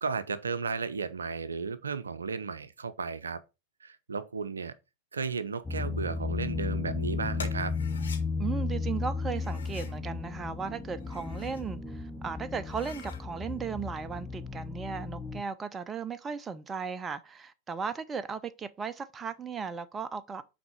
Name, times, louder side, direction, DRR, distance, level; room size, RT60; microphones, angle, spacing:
voice 1, 0.0-3.4 3.8-4.7 5.1-7.7, right 5 dB, 75° right, 0.5 m, -34 dB
sound 1, 5.6-15.4, left 4 dB, 10° left, 0.9 m, -34 dB
sound 2, 7.3-8.2 9.3-10.0 10.9-11.7 12.1-12.2 12.6-13.2, left 6 dB, 70° left, 1.7 m, -46 dB
voice 2, 8.4-20.4, right 6 dB, 20° right, 0.5 m, -36 dB
6.0 x 4.2 x 5.0 m
figure-of-eight pair, 90°, 0 cm